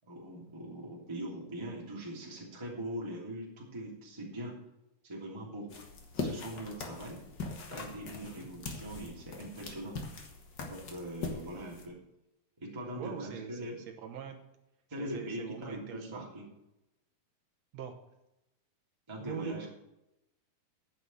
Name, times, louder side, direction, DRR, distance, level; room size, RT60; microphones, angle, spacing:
voice 1, 0.0-4.6 5.0-5.7 6.1-7.2 7.7-10.0 10.6-12.0 12.6-13.8 14.9-16.5 19.1-19.7, right 1 dB, 10° right, -4 dB, 2.7 m, -41 dB
sound 1, 5.7-11.9, left 3 dB, 55° left, 1.2 m, -41 dB
voice 2, 12.9-14.4 15.0-16.3 17.7-17.9 19.2-19.7, right 7 dB, 60° right, 5 dB, 1.8 m, -43 dB
9.7 x 7.1 x 7.7 m, 0.88 s
omnidirectional pair, 4.3 m